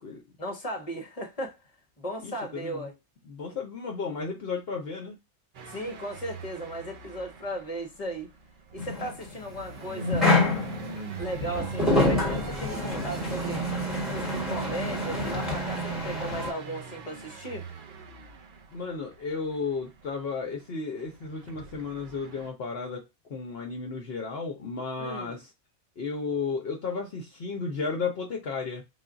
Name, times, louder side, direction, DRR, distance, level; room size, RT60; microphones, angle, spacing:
voice 1, 0.4-1.6 2.0-2.9 5.7-8.3 8.7-10.4 11.1-13.6 14.1-17.6 25.0-25.3, right 1 dB, 35° left, 1.0 m, -36 dB
voice 2, 2.2-2.9 3.2-5.2 18.7-23.0 23.3-25.5 26.0-28.8, left 4 dB, 60° left, 0.9 m, -33 dB
sound 1, 5.5-22.5, right 8 dB, 50° right, 0.7 m, -41 dB
sound 2, 8.8-16.5, left 2 dB, ahead, 1.3 m, -28 dB
3.7 x 2.4 x 3.8 m
omnidirectional pair, 1.2 m